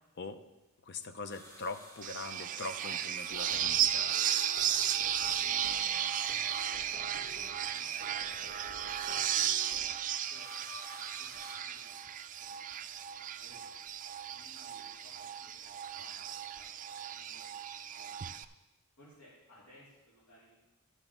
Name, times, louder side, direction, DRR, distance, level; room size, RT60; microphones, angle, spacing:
voice 1, 0.8-4.2, left 3 dB, 50° left, 9 dB, 0.6 m, -42 dB
sound 1, 1.3-7.5 9.9-12.4 13.5-14.2 15.7-15.8, left 1 dB, 15° left, 1.6 m, -54 dB
sound 2, 2.0-18.4, right 10 dB, 35° right, 0.3 m, -35 dB
sound 3, 3.3-9.9, left 2 dB, 65° left, 1.6 m, -52 dB
voice 2, 4.5-5.7 6.3-7.9 8.6-9.7 10.0-12.0 12.4-12.7 12.9-13.9 14.3-17.5 18.0-18.4 19.0-20.6, left 1 dB, 85° left, -9 dB, 3.0 m, -61 dB
12.5 x 5.9 x 5.6 m, 1.0 s
head